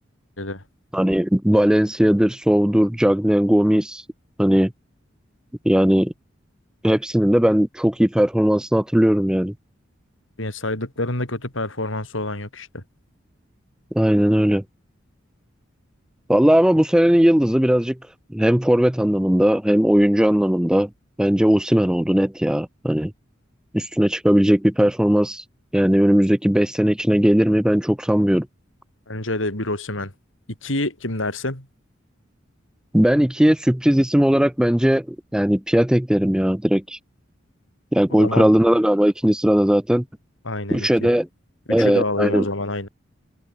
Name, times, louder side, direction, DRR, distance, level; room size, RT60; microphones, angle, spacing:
voice 1, 0.9-4.0 4.4-4.7 5.6-6.1 6.8-9.5 13.9-14.6 16.3-18.0 18.3-20.9 21.2-23.1 23.7-25.4 25.7-28.5 32.9-37.0 37.9-40.0 40.7-41.3 41.7-42.4, equal, 5° right, 0.5 m, -18 dB
voice 2, 10.4-12.8 29.1-30.1 30.6-31.7 38.1-38.5 40.4-41.1 41.8-42.9, left 2 dB, 85° left, 6.4 m, -27 dB
open air
head